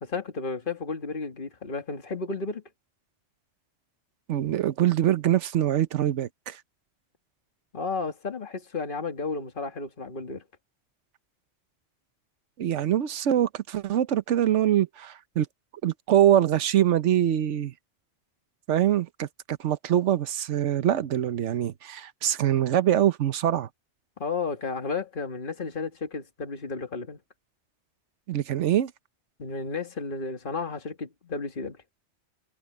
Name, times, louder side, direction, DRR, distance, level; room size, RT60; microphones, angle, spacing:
voice 1, 0.0-2.6 7.7-10.4 24.2-27.2 29.4-31.8, left 4 dB, 45° left, 2.1 m, -33 dB
voice 2, 4.3-6.6 12.6-15.5 15.8-17.7 18.7-23.7 28.3-28.9, right 11 dB, 80° right, 1.1 m, -24 dB
omnidirectional pair, 1.2 m